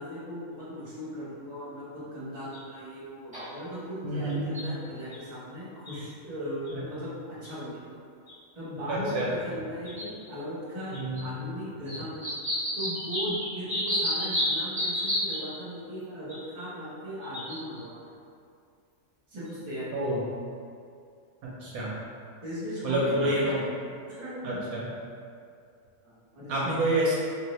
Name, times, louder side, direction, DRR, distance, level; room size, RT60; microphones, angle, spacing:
voice 1, 0.0-8.0 8.5-12.3 12.7-17.9 19.3-20.1 22.4-23.6 24.1-24.6 26.0-26.9, equal, 35° right, -10 dB, 1.1 m, -37 dB
sound 1, 2.5-2.6 3.3-3.4 4.3-4.6 5.1-5.2 5.9-6.0 6.7-6.8 7.4-7.5 8.3-8.4 9.2-9.3 9.8-10.2 10.9-11.2 11.9-15.4 16.3-16.6 17.2-17.8 19.5-19.6, equal, 5° right, 1.1 m, -30 dB
voice 2, 4.0-4.6 6.7-6.8 8.9-9.3 10.9-11.2 19.9-20.2 21.4-21.9 22.8-23.6 24.4-24.9 26.5-27.1, right 1 dB, 80° right, -6 dB, 1.0 m, -28 dB
2.8 x 2.6 x 3.1 m, 2.3 s
omnidirectional pair, 1.5 m